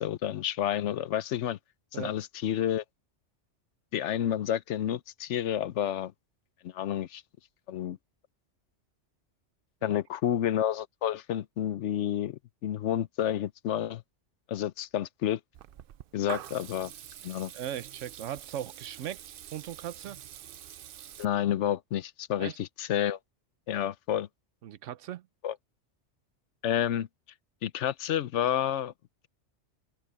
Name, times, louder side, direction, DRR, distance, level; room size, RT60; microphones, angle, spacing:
voice 1, 0.0-1.6 1.9-2.8 3.9-6.1 6.6-7.2 7.7-8.0 9.8-14.0 14.5-15.4 16.1-16.9 17.2-17.5 21.2-23.2 23.7-24.3 25.4-25.5 26.6-27.1 27.6-28.9, left 10 dB, 75° left, 1.0 m, -30 dB
Water tap faucet / Liquid, 15.5-21.2, right 11 dB, 60° right, 0.6 m, -45 dB
voice 2, 17.5-19.2 19.5-20.2 22.4-22.6 24.6-25.3, right 10 dB, 85° right, 1.1 m, -38 dB
open air
omnidirectional pair, 1.2 m